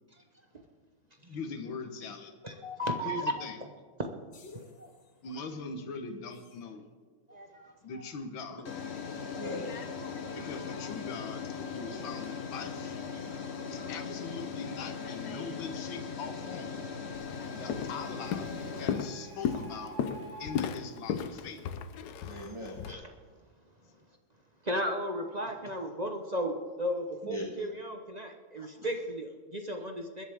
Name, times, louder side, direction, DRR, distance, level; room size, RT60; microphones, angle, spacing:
voice 1, 1.3-2.3 3.0-3.6 5.2-6.9 7.8-8.6 10.3-13.0 13.7-16.9 17.5-19.9 20.4-21.6, left 4 dB, 80° left, 5 dB, 2.0 m, -41 dB
voice 2, 2.4-3.2 9.3-9.7 22.2-22.8 27.2-27.5 28.6-28.9, equal, 15° right, -2 dB, 1.7 m, -38 dB
sound 1, 4.3-4.8 6.5-6.6 8.7-19.0, left 6 dB, 45° left, 1.0 m, -39 dB
voice 3, 4.5-4.9 7.3-8.0 13.1-13.9 22.9-23.1 24.6-30.2, equal, 30° right, 3 dB, 0.7 m, -36 dB
Walk footsteps, 17.1-17.4 17.7-18.0 18.3-22.9, left 7 dB, 65° left, 1.1 m, -34 dB
Printer, 17.5-22.1, right 2 dB, 80° right, 3.9 m, -49 dB
21.0 x 11.0 x 3.6 m, 1.5 s
omnidirectional pair, 2.1 m